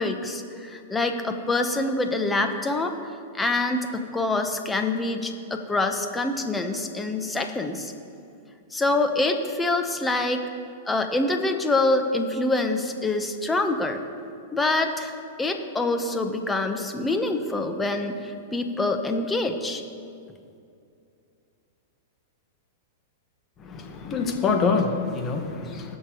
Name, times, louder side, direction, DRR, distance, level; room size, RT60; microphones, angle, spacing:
voice 1, 0.0-3.0 3.3-7.9 8.7-10.4 10.9-14.0 14.5-19.8, left 2 dB, 10° left, 5 dB, 0.9 m, -25 dB
voice 2, 23.6-26.0, left 4 dB, 25° left, 3 dB, 1.4 m, -25 dB
20.0 x 6.7 x 3.0 m, 2.5 s
hypercardioid pair, 120°, 0 cm